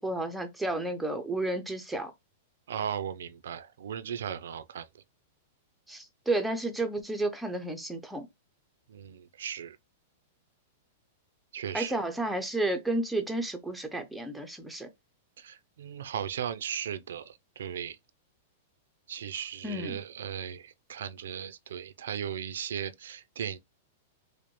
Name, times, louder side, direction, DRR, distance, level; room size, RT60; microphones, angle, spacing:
voice 1, 0.0-2.1 5.9-8.3 11.7-14.9 19.6-20.0, right 2 dB, ahead, 0.4 m, -32 dB
voice 2, 2.7-4.9 8.9-9.8 11.5-12.0 15.4-18.0 19.1-23.6, right 8 dB, 85° right, 0.4 m, -37 dB
5.0 x 2.1 x 3.0 m
supercardioid pair, 170°, 0 cm